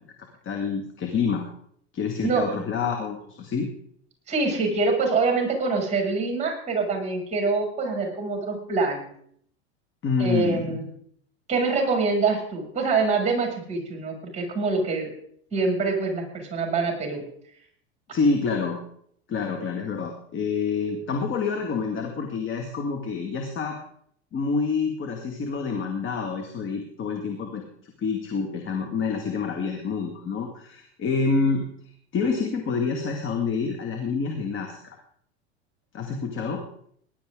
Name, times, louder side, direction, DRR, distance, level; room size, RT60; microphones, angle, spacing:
voice 1, 0.4-1.5 1.9-3.7 10.0-10.8 18.1-18.8 19.3-23.8 24.3-31.6 32.1-35.0 35.9-36.6, left 5 dB, 35° left, 3 dB, 2.2 m, -27 dB
voice 2, 4.3-9.1 10.2-10.9 11.5-15.1 15.5-17.2, right 4 dB, 20° right, 2 dB, 6.9 m, -25 dB
19.0 x 11.5 x 3.8 m, 0.64 s
hypercardioid pair, 100°, 34 cm